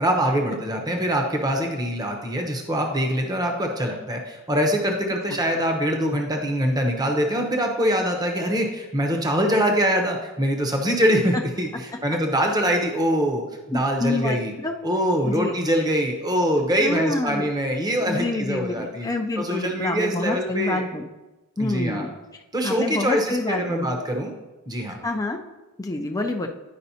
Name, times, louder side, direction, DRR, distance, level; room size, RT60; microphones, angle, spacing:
voice 1, 0.0-14.5 14.8-19.1 19.4-20.9 21.6-22.1 22.5-24.3 24.7-25.0, equal, 20° right, 2 dB, 0.8 m, -24 dB
voice 2, 13.7-14.8 15.2-15.5 16.8-17.5 18.0-21.0 21.6-22.1 22.6-23.9 25.0-25.4 25.8-26.5, left 2 dB, 15° left, 2 dB, 0.4 m, -27 dB
10.0 x 5.2 x 2.7 m, 1.1 s
head